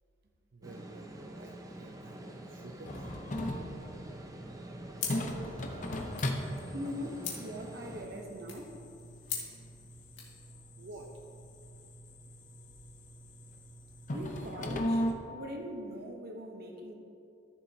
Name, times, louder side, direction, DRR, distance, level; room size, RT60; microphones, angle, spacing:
voice 1, 0.5-3.3 10.8-11.1, right 2 dB, 75° right, 1 dB, 0.6 m, -50 dB
sound 1, 0.6-8.1, right 1 dB, 20° right, 0.7 m, -46 dB
sound 2, 2.9-15.1, equal, 45° left, 0.7 m, -39 dB
sound 3, 5.0-10.4, left 6 dB, 80° left, 1.9 m, -44 dB
voice 2, 6.7-8.8 14.1-16.9, equal, 55° right, 3 dB, 0.9 m, -41 dB
13.5 x 7.0 x 2.8 m, 2.6 s
head